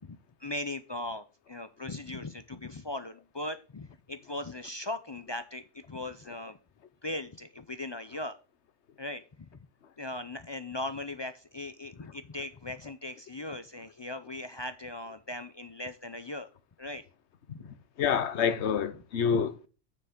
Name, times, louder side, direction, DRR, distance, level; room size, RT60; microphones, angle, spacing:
voice 1, 0.1-6.6 7.0-8.4 9.0-9.6 10.0-16.5 16.8-17.0 17.5-17.7, left 2 dB, 45° left, 0.3 m, -39 dB
voice 2, 18.0-19.7, left 7 dB, 70° left, 1.1 m, -27 dB
6.9 x 6.9 x 5.1 m
omnidirectional pair, 1.2 m